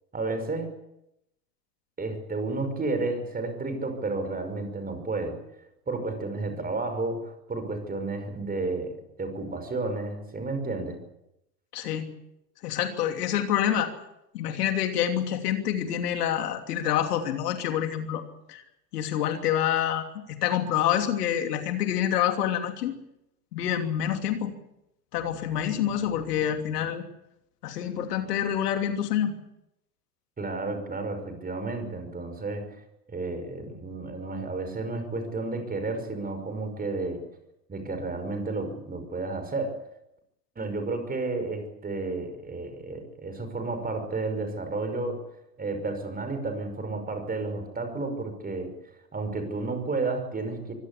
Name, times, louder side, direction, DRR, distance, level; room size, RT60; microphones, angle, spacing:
voice 1, 0.1-0.8 2.0-5.4 5.9-11.0 30.4-32.7 33.1-37.2 37.7-39.8 40.6-45.2 45.6-48.7 49.1-50.7, right 3 dB, 20° right, 8 dB, 5.6 m, -32 dB
voice 2, 11.7-12.1 12.6-13.9 14.3-18.2 18.5-18.6 18.9-22.9 23.5-24.5 25.1-27.0 27.6-29.3, left 10 dB, 65° left, 6 dB, 3.1 m, -27 dB
24.5 x 17.0 x 8.5 m, 0.83 s
hypercardioid pair, 85°, 49 cm